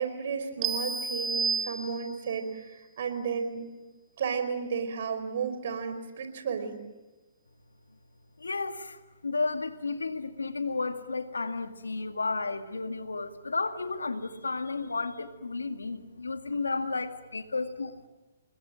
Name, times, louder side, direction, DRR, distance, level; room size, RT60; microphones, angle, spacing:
voice 1, 0.0-3.6 4.2-6.8, right 6 dB, 60° right, 8 dB, 4.8 m, -33 dB
sound 1, 0.6-2.3, right 5 dB, 25° right, 2.3 m, -31 dB
voice 2, 8.4-17.9, left 3 dB, 90° left, 8 dB, 1.9 m, -33 dB
29.0 x 21.0 x 7.6 m, 1.1 s
hypercardioid pair, 130°, 0 cm